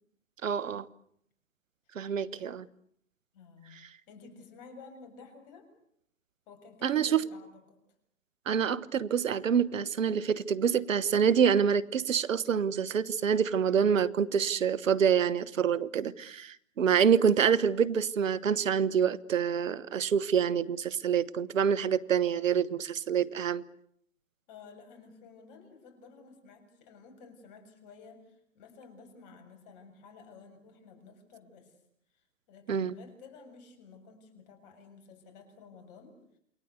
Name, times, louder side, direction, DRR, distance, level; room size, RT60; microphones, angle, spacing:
voice 1, 0.4-0.9 1.9-2.6 6.8-7.2 8.5-23.6 32.7-32.9, right 7 dB, 80° right, 19 dB, 1.2 m, -26 dB
voice 2, 3.3-3.8 4.1-5.7 6.5-7.8 24.5-31.7 32.1-36.2, left 5 dB, 40° left, 6 dB, 7.1 m, -52 dB
28.5 x 22.0 x 8.2 m, 0.69 s
hypercardioid pair, 135°, 38 cm